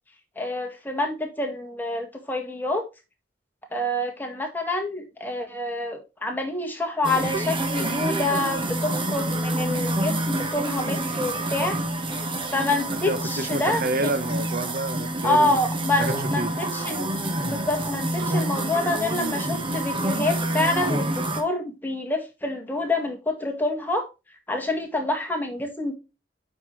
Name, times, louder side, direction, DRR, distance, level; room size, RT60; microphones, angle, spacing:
voice 1, 0.4-2.9 3.7-11.8 12.5-14.1 15.2-17.1 17.4-24.1 24.5-25.9, left 2 dB, 10° left, 1.9 m, -27 dB
sound 1, 7.0-21.4, right 1 dB, 30° right, 1.3 m, -27 dB
voice 2, 12.9-15.6 15.9-16.6, right 2 dB, 55° right, 0.9 m, -29 dB
8.3 x 5.7 x 3.2 m
head